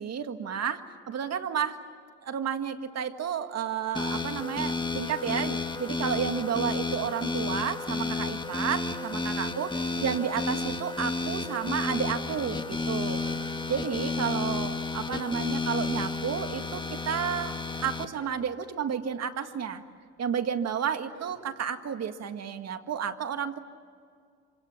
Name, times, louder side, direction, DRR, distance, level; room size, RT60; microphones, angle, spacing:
voice 1, 0.0-1.8 2.2-19.8 20.2-23.6, right 7 dB, 60° right, 8 dB, 1.9 m, -32 dB
sound 1, 3.9-18.1, left 3 dB, 15° left, 1.6 m, -32 dB
sound 2, 12.3-12.6 13.2-13.5 14.0-14.2 15.1-15.4 15.9-16.2 16.9-17.2 18.1-18.4 19.4-19.6 21.1-21.4, right 4 dB, 75° right, 7.7 m, -51 dB
27.0 x 26.0 x 7.4 m, 2.1 s
cardioid pair, 90°, 30 cm